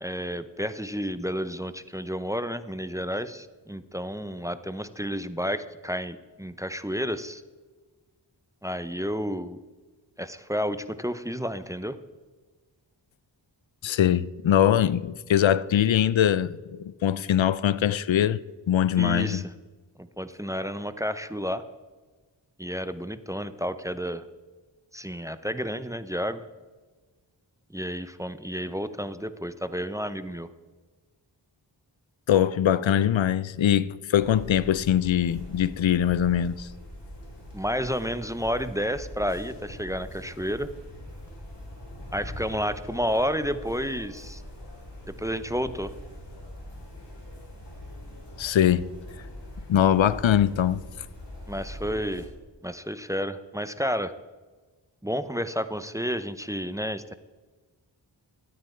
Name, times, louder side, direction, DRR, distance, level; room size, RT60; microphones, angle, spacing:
voice 1, 0.0-7.4 8.6-9.6 10.2-12.0 19.0-19.5 20.0-21.7 22.6-24.3 24.9-26.4 27.7-30.5 37.5-40.7 42.1-44.4 45.1-45.9 51.5-52.3 52.6-54.1 55.0-57.1, equal, 5° right, 0.6 m, -31 dB
voice 2, 13.8-18.4 18.7-19.4 32.3-36.7 48.4-48.9 49.7-50.8, left 10 dB, 80° left, 0.5 m, -22 dB
sound 1, 34.2-52.3, left 1 dB, 65° left, 3.4 m, -42 dB
13.0 x 9.5 x 4.3 m
wide cardioid pair, 40°, 45 cm